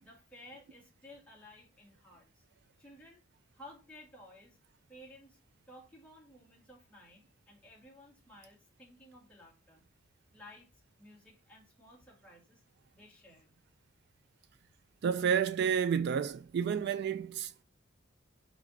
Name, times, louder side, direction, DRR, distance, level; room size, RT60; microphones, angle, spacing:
voice 1, 0.0-2.4 2.8-3.2 3.5-4.6 4.9-5.4 5.7-9.8 10.3-10.7 11.0-12.6 12.9-13.5, left 1 dB, 5° left, 2.1 m, -55 dB
voice 2, 15.0-17.6, right 7 dB, 55° right, 0.3 m, -30 dB
4.9 x 4.3 x 5.2 m
head